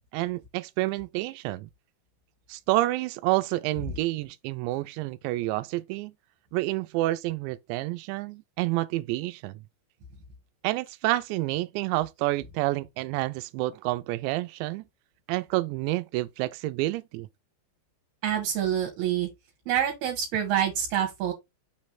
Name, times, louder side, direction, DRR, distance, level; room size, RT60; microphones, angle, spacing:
voice 1, 0.1-1.7 2.5-6.1 6.5-9.5 10.6-14.8 15.3-17.3, right 18 dB, 90° right, 2.8 m, -29 dB
voice 2, 18.2-19.3 19.7-21.3, right 10 dB, 75° right, 3.2 m, -26 dB
6.3 x 3.1 x 5.8 m
omnidirectional pair, 5.0 m